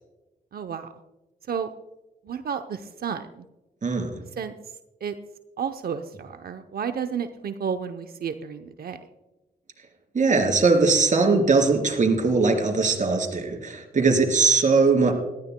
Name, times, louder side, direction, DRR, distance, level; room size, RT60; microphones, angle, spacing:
voice 1, 0.5-0.9 1.5-1.7 2.2-3.5 4.4-4.5 5.0-5.1 5.6-9.0, right 7 dB, 65° right, 8 dB, 0.7 m, -31 dB
voice 2, 10.1-15.1, right 4 dB, 50° right, 2 dB, 3.6 m, -20 dB
19.0 x 13.5 x 2.2 m, 1.1 s
cardioid pair, 65°, 17 cm